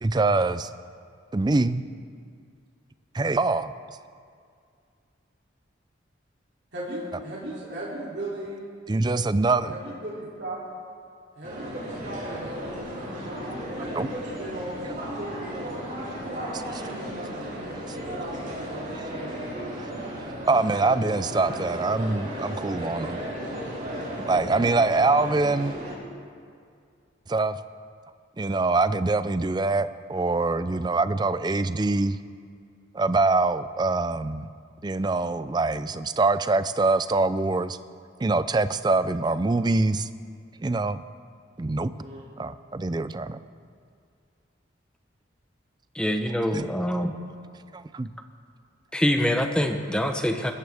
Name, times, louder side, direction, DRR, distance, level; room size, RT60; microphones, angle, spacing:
voice 1, 0.0-0.7 1.3-1.8 3.1-3.7 8.9-9.7 14.0-14.1 20.5-23.2 24.3-25.8 27.3-27.6 28.4-32.2 32.9-34.5 34.8-37.8 38.2-40.1 40.6-41.0 41.6-41.9 42.4-43.4 46.5-46.7 47.7-48.1, right 3 dB, 20° right, 13 dB, 0.4 m, -24 dB
voice 2, 6.7-8.6 9.6-10.6 11.3-13.4 13.8-15.8 16.2-19.5 41.9-42.2, right 1 dB, 60° right, -6 dB, 3.1 m, -37 dB
sound 1, 11.4-25.9, equal, 45° right, 4.6 m, -35 dB
voice 3, 45.9-47.1 48.9-50.5, equal, 5° left, 5 dB, 0.8 m, -25 dB
22.0 x 14.0 x 3.5 m, 2.2 s
head